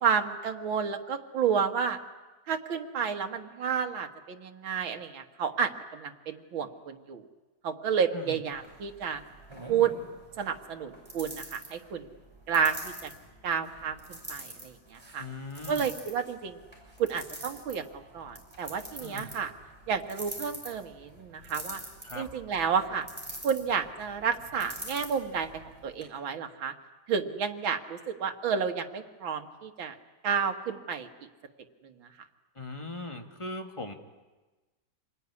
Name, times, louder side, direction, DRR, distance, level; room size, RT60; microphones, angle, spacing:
voice 1, 0.0-2.0 2.5-7.3 7.6-9.2 9.7-9.9 10.4-12.1 12.5-13.1 13.4-15.3 15.7-16.6 17.0-19.5 19.9-21.8 22.2-23.1 23.4-26.7 27.1-30.0 30.2-31.1 31.8-31.9, right 7 dB, 90° right, 6 dB, 2.3 m, -31 dB
sound 1, 8.5-26.0, right 1 dB, 15° right, 6.3 m, -46 dB
voice 2, 15.2-15.9 19.0-19.3 22.0-22.3 32.6-33.9, left 2 dB, 15° left, 4 dB, 2.0 m, -39 dB
27.0 x 20.5 x 9.7 m, 1.2 s
omnidirectional pair, 2.1 m